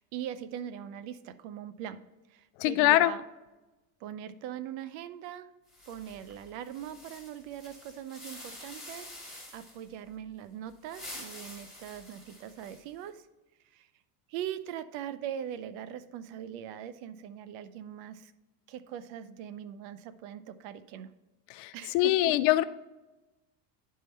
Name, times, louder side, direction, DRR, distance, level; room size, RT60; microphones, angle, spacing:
voice 1, 0.0-2.0 2.3-3.2 4.0-5.5 5.9-13.2 13.7-13.9 14.3-18.3 18.7-21.1 21.7-22.4, right 10 dB, 65° right, 13 dB, 0.6 m, -41 dB
voice 2, 2.6-3.1 21.5-22.6, left 16 dB, 65° left, 14 dB, 0.5 m, -24 dB
sound 1, 5.7-9.9 10.7-13.0, left 1 dB, ahead, 2.3 m, -48 dB
11.0 x 3.7 x 4.3 m, 1.1 s
supercardioid pair, 115°, 49 cm